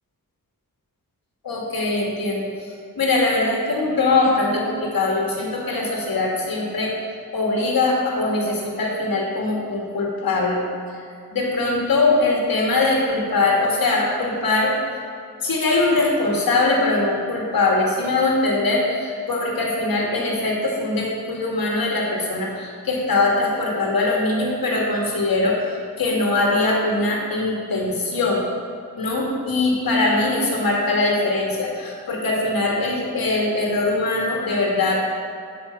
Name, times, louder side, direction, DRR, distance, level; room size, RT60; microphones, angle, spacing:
voice 1, 1.4-2.5 3.0-6.9 7.3-10.6 11.3-14.7 15.4-25.6 26.0-28.4 29.0-35.1, left 2 dB, 70° left, -3 dB, 2.2 m, -21 dB
8.3 x 5.7 x 5.7 m, 2.3 s
cardioid pair, 55°, 37 cm